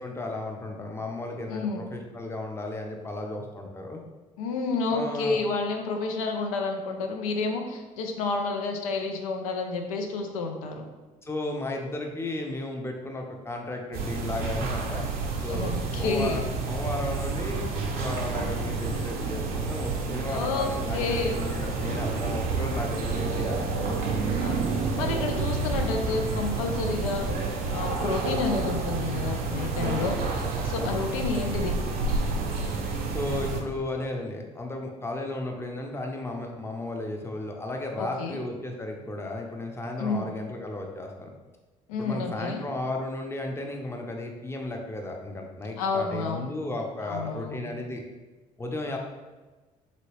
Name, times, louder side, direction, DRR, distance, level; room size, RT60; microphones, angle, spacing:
voice 1, 0.0-4.0 4.9-5.4 11.2-15.1 15.4-16.4 16.7-17.6 17.9-23.7 29.8-30.2 30.7-31.1 33.0-41.3 42.0-48.0 48.6-49.0, left 2 dB, 15° left, 2 dB, 0.6 m, -34 dB
voice 2, 1.5-1.8 4.4-10.8 15.5-16.4 20.3-21.4 24.4-24.6 25.0-27.2 27.7-30.2 30.6-31.8 38.0-38.4 40.0-40.3 41.9-42.6 45.8-46.5 47.0-47.7, left 4 dB, 85° left, 3 dB, 0.4 m, -30 dB
sound 1, 13.9-33.6, right 4 dB, 60° right, 0.6 m, -29 dB
3.0 x 2.8 x 2.9 m, 1.3 s
hypercardioid pair, 50°, 18 cm